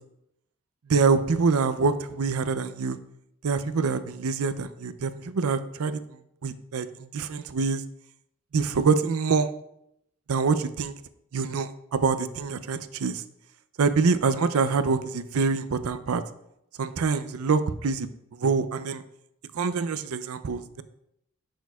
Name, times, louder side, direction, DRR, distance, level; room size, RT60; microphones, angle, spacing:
voice 1, 0.9-3.0 3.4-6.9 7.1-7.8 8.5-9.5 10.3-10.9 11.3-13.2 13.8-16.2 16.8-18.1 18.4-19.0 19.5-20.8, right 4 dB, 75° right, 11 dB, 0.5 m, -25 dB
10.5 x 6.2 x 2.3 m, 0.79 s
head